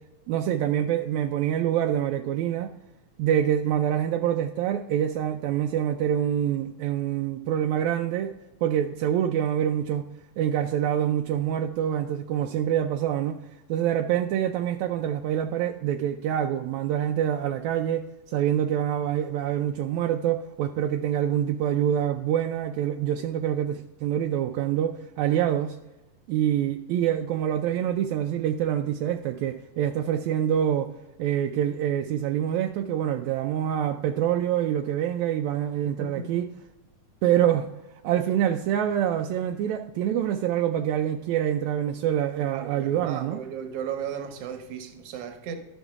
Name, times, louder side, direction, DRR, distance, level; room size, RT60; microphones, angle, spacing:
voice 1, 0.3-2.7 3.2-8.3 8.6-10.0 10.4-13.4 13.7-25.8 26.3-30.9 31.2-36.5 37.2-37.7 38.0-43.4, right 10 dB, 85° right, 5 dB, 1.6 m, -26 dB
voice 2, 36.0-36.4 42.5-45.6, right 7 dB, 65° right, 7 dB, 1.6 m, -35 dB
13.0 x 6.2 x 3.6 m, 1.0 s
omnidirectional pair, 3.8 m